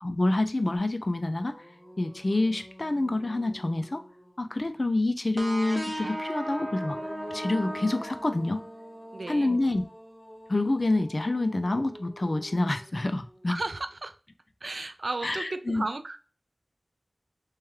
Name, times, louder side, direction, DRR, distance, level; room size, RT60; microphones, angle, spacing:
voice 1, 0.0-1.5 2.0-4.0 4.4-7.0 7.3-8.6 9.3-9.9 10.5-13.6 15.2-15.8, left 2 dB, 45° left, 8 dB, 0.4 m, -27 dB
sound 1, 0.7-0.8 1.2-4.9 6.6-13.8, equal, 15° left, 0.9 m, -49 dB
sound 2, 5.4-8.9, equal, 25° right, 0.8 m, -36 dB
voice 2, 9.1-9.5 13.5-14.2 14.6-16.2, right 2 dB, 65° right, 10 dB, 0.3 m, -34 dB
3.1 x 3.0 x 3.5 m, 0.39 s
wide cardioid pair, 60°, 0 cm